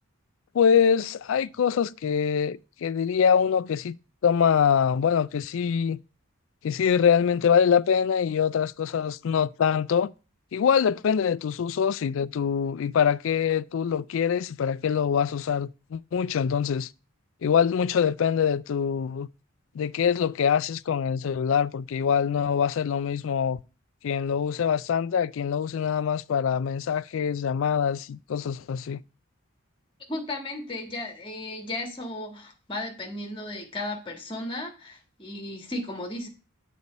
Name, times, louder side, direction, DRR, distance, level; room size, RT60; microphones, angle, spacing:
voice 1, 0.5-3.9 4.2-6.0 6.6-10.1 10.5-16.9 17.4-19.3 19.8-23.6 24.0-29.0, left 7 dB, 60° left, 0.3 m, -24 dB
voice 2, 30.1-36.3, left 2 dB, 25° left, 1.5 m, -35 dB
8.2 x 4.2 x 5.2 m
head